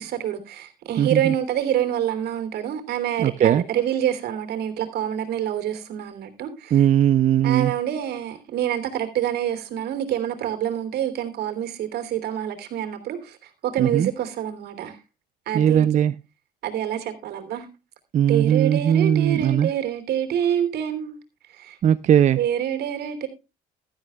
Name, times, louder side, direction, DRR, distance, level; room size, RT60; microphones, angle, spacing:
voice 1, 0.0-6.8 7.4-13.4 13.6-15.0 15.5-15.9 16.6-17.7 18.3-21.2 21.5-21.8 22.4-23.3, right 10 dB, 70° right, 3.0 m, -26 dB
voice 2, 1.0-1.3 3.2-3.6 6.7-7.7 13.8-14.1 15.5-16.1 18.1-19.7 21.8-22.4, right 10 dB, 45° right, 0.5 m, -19 dB
15.5 x 12.5 x 2.3 m
cardioid pair, 110°, 17 cm